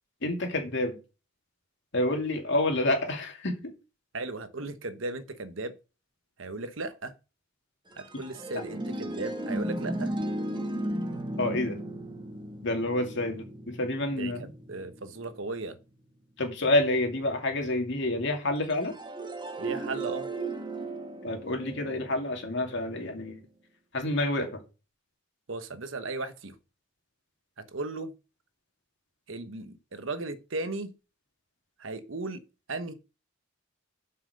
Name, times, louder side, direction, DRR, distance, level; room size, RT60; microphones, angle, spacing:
voice 1, 0.2-1.0 1.9-3.7 11.4-11.8 12.6-14.5 16.4-18.9 21.2-23.4 23.9-24.6, left 1 dB, 60° left, 2.5 m, -28 dB
voice 2, 4.1-5.7 6.4-7.2 8.0-10.1 14.1-15.8 19.6-20.3 25.5-26.6 27.6-28.1 29.3-30.9 31.8-32.4 32.7-32.9, right 3 dB, 70° right, 1.1 m, -36 dB
sound 1, 7.9-15.5 18.7-22.8, right 1 dB, 25° right, 1.2 m, -35 dB
7.7 x 5.8 x 6.6 m
head